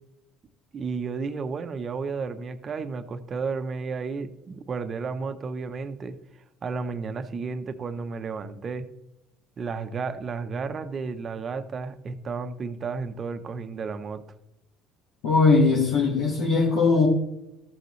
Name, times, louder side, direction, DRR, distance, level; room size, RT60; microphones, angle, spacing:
voice 1, 0.7-6.2 6.6-8.9 9.6-14.2, right 4 dB, 35° right, 9 dB, 0.8 m, -32 dB
voice 2, 15.2-17.1, left 4 dB, 85° left, -4 dB, 1.8 m, -20 dB
14.0 x 6.7 x 3.2 m, 0.88 s
cardioid pair, 115°, 0 cm